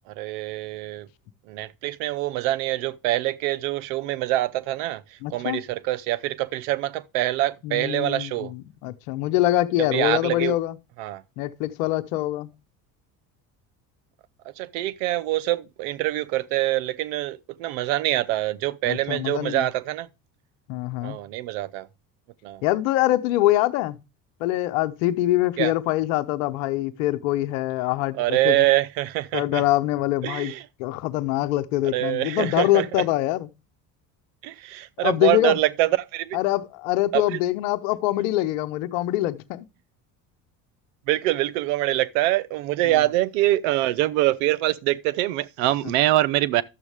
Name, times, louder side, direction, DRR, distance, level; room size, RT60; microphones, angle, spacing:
voice 1, 0.2-1.1 1.5-8.5 9.9-10.5 11.0-11.2 14.6-20.1 21.0-21.9 22.4-22.6 25.6-25.7 28.2-29.6 30.2-30.6 31.9-33.0 34.4-36.4 37.1-37.4 41.1-46.6, right 16 dB, 85° right, 0.7 m, -25 dB
voice 2, 5.2-5.6 7.6-10.8 11.4-12.5 18.9-19.7 20.7-21.2 22.6-24.0 24.4-28.7 29.3-30.5 30.8-33.5 35.0-35.6 36.3-39.7 42.8-43.1 45.8-45.9, left 15 dB, 90° left, 0.9 m, -24 dB
12.0 x 7.2 x 3.4 m
supercardioid pair, 80°, 39 cm